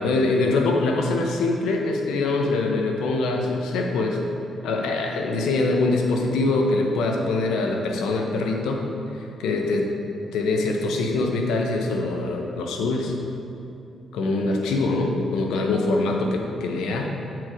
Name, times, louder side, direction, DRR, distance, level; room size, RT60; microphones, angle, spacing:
voice 1, 0.0-4.2 4.6-8.9 9.4-9.9 10.3-13.1 14.1-17.1, left 2 dB, 90° left, 2 dB, 0.8 m, -23 dB
7.7 x 4.7 x 4.9 m, 2.7 s
cardioid pair, 75°, 0 cm